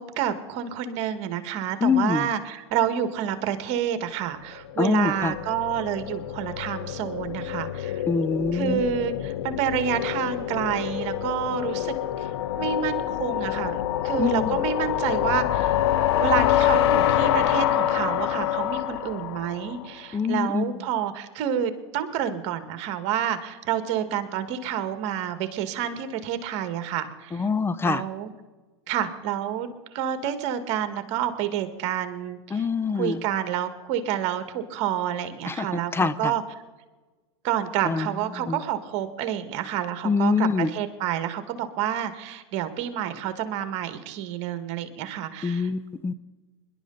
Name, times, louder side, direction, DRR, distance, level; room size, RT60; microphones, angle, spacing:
voice 1, 0.0-8.0 8.5-12.3 12.6-15.7 16.2-27.5 27.8-28.3 28.9-32.7 32.9-36.4 37.4-45.7, right 9 dB, 55° right, 10 dB, 1.8 m, -29 dB
voice 2, 1.8-2.3 4.8-5.3 8.1-8.8 14.2-14.5 20.1-20.7 27.3-28.0 32.5-33.2 35.5-35.7 35.9-36.3 37.8-38.1 38.5-38.6 40.0-40.7 45.4-46.1, left 5 dB, 15° left, 14 dB, 0.7 m, -24 dB
sound 1, 4.7-19.9, left 11 dB, 70° left, 0.8 m, -26 dB
24.5 x 11.5 x 4.0 m, 1.3 s
hypercardioid pair, 100°, 14 cm